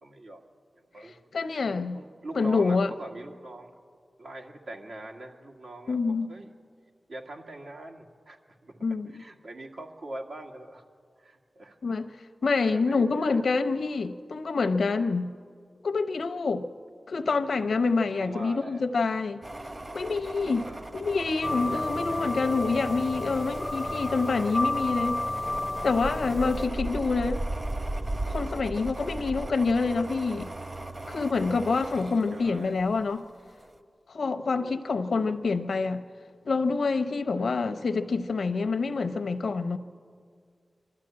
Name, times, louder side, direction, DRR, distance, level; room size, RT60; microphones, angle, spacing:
voice 1, 0.0-0.4 0.8-1.4 1.9-3.7 4.2-6.5 7.1-8.7 9.1-10.8 11.2-11.8 12.7-13.4 18.2-18.9 20.6-21.1 21.6-22.3 26.6-26.8 32.3-32.8 34.6-34.8 35.1-35.3 37.4-37.7, right 1 dB, 85° right, 0 dB, 2.0 m, -43 dB
voice 2, 1.3-2.0 2.3-2.9 5.9-6.3 8.8-9.1 11.8-12.1 12.4-15.3 15.8-16.6 17.1-19.4 19.9-20.7 20.9-25.2 25.8-27.4 28.3-30.5 31.1-33.2 34.1-36.0 36.5-39.8, left 4 dB, 85° left, 9 dB, 0.7 m, -27 dB
sound 1, 19.4-33.1 33.5-33.7, right 2 dB, 45° right, 1.5 m, -37 dB
sound 2, 21.4-26.7, left 2 dB, 40° left, 0.5 m, -32 dB
24.5 x 12.5 x 8.7 m, 2.1 s
cardioid pair, 45°, 0 cm